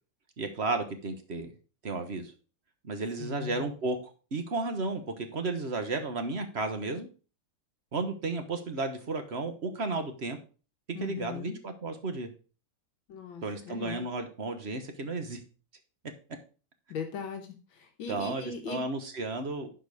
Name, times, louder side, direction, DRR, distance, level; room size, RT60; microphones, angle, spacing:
voice 1, 0.4-1.5 1.8-2.3 2.8-4.0 4.3-7.1 7.9-10.4 10.9-12.3 13.4-15.4 18.1-19.7, right 3 dB, 40° right, 7 dB, 1.2 m, -33 dB
voice 2, 3.2-3.7 10.9-11.6 13.1-14.0 16.9-18.8, left 6 dB, 80° left, 4 dB, 1.9 m, -39 dB
11.0 x 4.6 x 4.8 m, 0.36 s
omnidirectional pair, 2.1 m